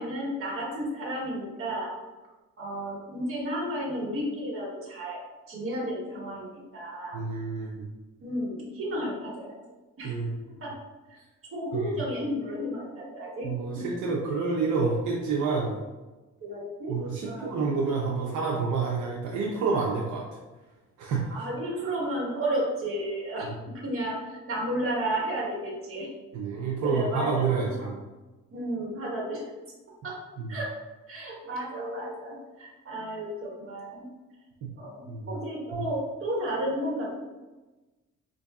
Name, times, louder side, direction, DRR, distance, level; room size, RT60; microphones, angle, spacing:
voice 1, 0.0-1.9 2.6-5.2 5.5-7.2 8.2-9.6 10.0-10.2 10.6-10.7 11.5-13.5 13.7-14.0 16.4-17.0 17.2-17.7 21.3-23.5 23.7-26.1 26.8-27.9 28.5-29.4 30.0-30.2 30.5-30.7 31.1-34.1 34.7-37.2, right 1 dB, 45° right, -4 dB, 1.4 m, -32 dB
voice 2, 7.1-7.9 10.0-10.4 11.7-11.9 13.4-15.7 16.9-20.2 21.0-21.4 26.3-28.0 30.4-30.6 34.6-34.7 35.1-35.3 35.7-35.8, right 4 dB, 80° right, -2 dB, 0.6 m, -28 dB
4.5 x 2.6 x 2.3 m, 1.1 s
cardioid pair, 90°, 30 cm